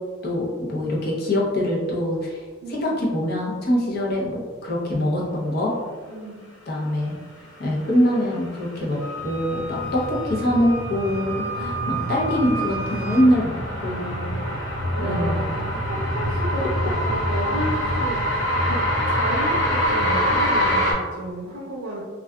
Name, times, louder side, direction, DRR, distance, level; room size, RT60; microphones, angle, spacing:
voice 1, 0.2-2.4 2.7-5.7 6.7-7.2 7.6-9.0 9.2-13.6 13.8-14.3 15.0-15.5, equal, 50° left, -4 dB, 0.7 m, -23 dB
voice 2, 2.6-3.2 6.0-6.4 11.6-12.0 14.9-15.8 16.1-17.7 18.0-18.2 18.6-22.0, right 1 dB, 90° right, -5 dB, 0.5 m, -33 dB
sound 1, 8.1-20.9, equal, 80° left, 0.8 m, -25 dB
Wind instrument woodwind instrument, 9.0-13.3, right 3 dB, 20° right, 0.7 m, -33 dB
3.6 x 2.3 x 2.2 m, 1.5 s
head